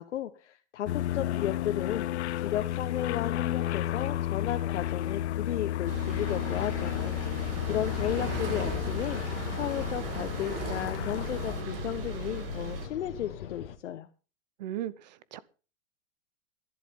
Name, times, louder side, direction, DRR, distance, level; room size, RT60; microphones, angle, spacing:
voice 1, 0.0-14.1, left 11 dB, 90° left, 1.3 m, -34 dB
sound 1, 0.8-11.6, left 13 dB, 70° left, 0.8 m, -32 dB
sound 2, 5.9-12.9, right 4 dB, 55° right, 3.4 m, -37 dB
sound 3, 6.4-13.8, left 9 dB, 50° left, 1.6 m, -43 dB
voice 2, 14.6-15.4, right 12 dB, 40° right, 0.8 m, -37 dB
13.5 x 11.0 x 5.4 m
supercardioid pair, 180°, 35 cm